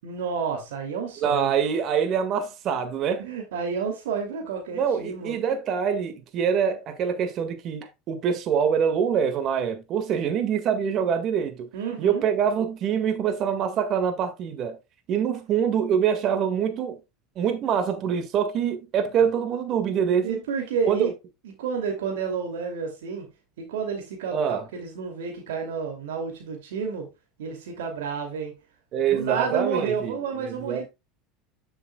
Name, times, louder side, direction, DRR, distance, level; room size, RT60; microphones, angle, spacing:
voice 1, 0.0-1.5 3.2-5.4 11.7-12.2 20.2-21.1 21.4-23.3 23.6-27.1 27.4-28.6 29.1-30.9, right 6 dB, 85° right, 2.5 m, -30 dB
voice 2, 1.2-3.3 4.7-11.7 12.0-14.8 15.1-17.0 17.4-20.4 20.9-21.1 24.3-24.6 28.9-30.9, right 7 dB, 50° right, 1.8 m, -25 dB
9.2 x 7.9 x 2.3 m
supercardioid pair, 100°, 0 cm